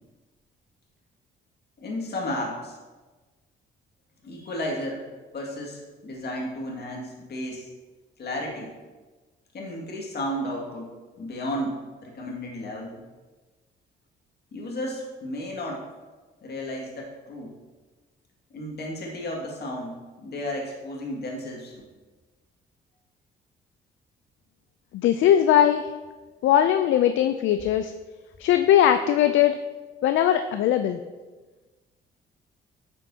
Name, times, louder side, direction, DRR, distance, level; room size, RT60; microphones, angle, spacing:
voice 1, 1.8-2.8 4.2-5.0 5.3-7.7 8.2-8.7 9.5-10.9 11.2-13.0 14.5-15.8 16.4-17.5 18.5-21.9, left 1 dB, 55° left, -1 dB, 2.1 m, -33 dB
voice 2, 24.9-25.9 26.4-27.9 28.4-29.6 30.0-31.0, left 10 dB, 75° left, 9 dB, 0.4 m, -20 dB
8.9 x 7.0 x 2.8 m, 1.3 s
cardioid pair, 90°, 20 cm